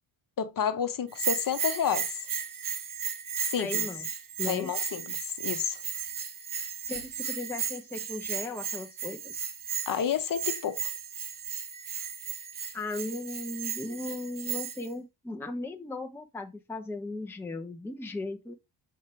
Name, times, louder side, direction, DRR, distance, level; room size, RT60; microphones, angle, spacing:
voice 1, 0.4-2.1 3.5-3.8 4.5-5.8 9.9-10.9, left 8 dB, 45° left, 1.0 m, -30 dB
Bell, 1.1-14.9, right 8 dB, 45° right, 1.2 m, -35 dB
voice 2, 3.6-4.1 4.4-4.8 6.8-9.4 12.7-18.6, left 2 dB, 5° left, 0.7 m, -37 dB
7.2 x 4.4 x 3.1 m
cardioid pair, 135°, 45 cm